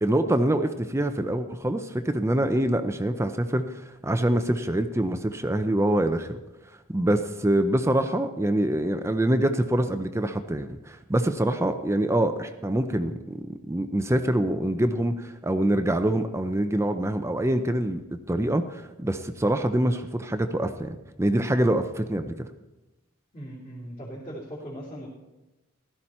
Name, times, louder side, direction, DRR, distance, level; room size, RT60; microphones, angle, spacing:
voice 1, 0.0-6.4 6.9-13.1 13.7-18.0 18.3-22.5, right 1 dB, 15° right, 8 dB, 0.6 m, -25 dB
voice 2, 23.3-25.1, equal, 35° left, -8 dB, 3.1 m, -39 dB
16.0 x 12.5 x 4.4 m, 1.0 s
head